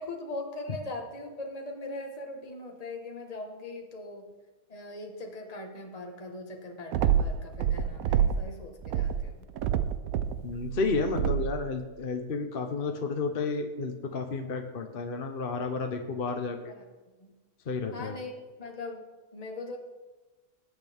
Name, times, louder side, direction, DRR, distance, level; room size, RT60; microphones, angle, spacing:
voice 1, 0.0-4.3 4.7-9.4 16.7-16.8 17.2-17.3 17.9-18.3 18.6-19.0 19.3-19.8, left 2 dB, 25° left, 2 dB, 1.5 m, -40 dB
sound 1, 6.9-8.5 8.8-11.6, right 9 dB, 75° right, 1.1 m, -27 dB
voice 2, 10.4-16.7 17.7-18.2, left 4 dB, 45° left, 4 dB, 1.0 m, -31 dB
20.0 x 8.1 x 3.6 m, 1.2 s
omnidirectional pair, 1.5 m